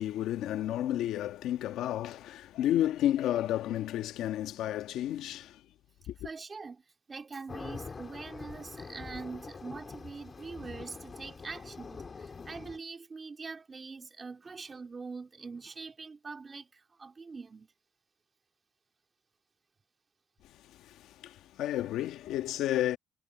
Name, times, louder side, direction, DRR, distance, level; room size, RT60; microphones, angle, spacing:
voice 1, 0.0-5.6 6.1-6.2 20.8-23.0, left 12 dB, 85° left, 1.4 m, -31 dB
voice 2, 6.2-17.7, right 4 dB, 35° right, 2.9 m, -44 dB
sound 1, 7.5-12.8, left 5 dB, 35° left, 3.1 m, -44 dB
cardioid pair, 90°, 0 cm